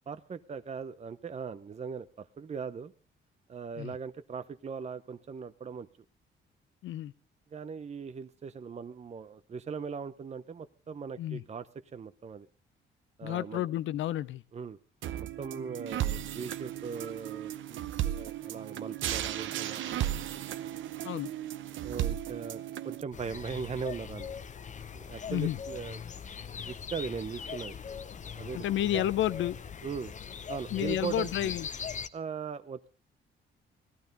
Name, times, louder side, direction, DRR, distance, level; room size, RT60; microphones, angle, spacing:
voice 1, 0.1-2.9 3.5-5.9 7.5-11.7 11.9-12.5 13.2-13.7 14.5-14.8 15.4-20.1 21.8-24.3 24.9-26.0 26.6-27.8 28.4-28.6 28.9-29.0 29.8-30.1 30.5-31.6 32.1-32.9, right 6 dB, 35° right, 0.8 m, -39 dB
voice 2, 6.8-7.1 11.2-11.4 13.2-14.4 21.0-21.3 25.3-25.6 28.5-29.6 30.7-31.7, left 12 dB, 75° left, 0.7 m, -31 dB
sound 1, 15.0-23.0, right 12 dB, 75° right, 0.9 m, -35 dB
sound 2, 23.1-32.1, left 7 dB, 40° left, 0.8 m, -41 dB
17.5 x 12.5 x 5.3 m
cardioid pair, 90°, 20 cm